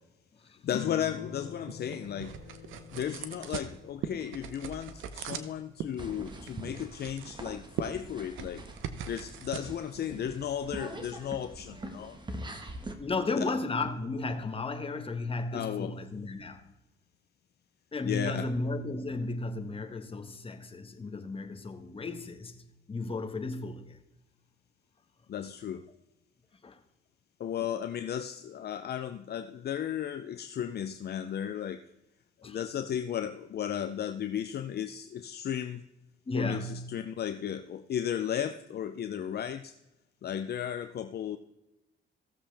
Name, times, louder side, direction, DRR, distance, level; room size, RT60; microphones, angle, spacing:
voice 1, 0.6-2.4 2.9-8.6 9.0-12.2 13.4-13.5 15.5-16.0 18.0-18.5 25.3-25.8 27.4-31.8 32.4-35.8 36.3-39.7 40.2-41.4, left 9 dB, 55° left, 0.6 m, -35 dB
sound 1, 0.7-5.6, left 8 dB, 90° left, 1.0 m, -45 dB
sound 2, 1.1-11.3, right 8 dB, 90° right, 0.9 m, -42 dB
sound 3, 6.0-12.9, right 1 dB, 25° right, 1.5 m, -44 dB
voice 2, 13.0-16.6 17.9-24.0 26.6-26.8 27.6-27.7 32.4-32.6 36.3-36.9, left 3 dB, 30° left, 1.5 m, -34 dB
16.5 x 7.2 x 3.4 m
cardioid pair, 90°, 20 cm